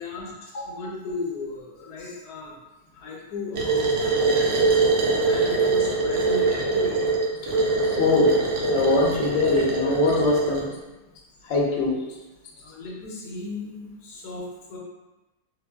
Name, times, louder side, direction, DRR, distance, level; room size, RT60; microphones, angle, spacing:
voice 1, 0.0-2.5 2.9-4.5 4.9-7.0 12.6-14.8, left 3 dB, 80° left, -2 dB, 1.2 m, -36 dB
sound 1, 3.5-10.7, right 3 dB, 65° right, 0.7 m, -23 dB
voice 2, 8.0-8.3 8.7-10.6 11.5-12.0, left 3 dB, 65° left, -3 dB, 0.8 m, -22 dB
3.8 x 2.1 x 2.2 m, 1.1 s
omnidirectional pair, 1.7 m